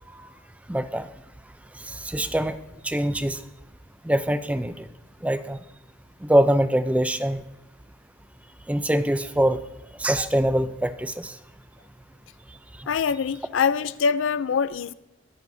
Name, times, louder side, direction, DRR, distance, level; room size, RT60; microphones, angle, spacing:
voice 1, 0.7-1.1 1.9-2.6 2.8-3.4 4.0-4.9 5.2-5.6 6.2-7.4 8.7-9.6 10.0-11.3, right 1 dB, 5° right, 0.4 m, -23 dB
voice 2, 12.9-14.9, left 6 dB, 85° left, 0.4 m, -24 dB
23.5 x 9.6 x 2.7 m
head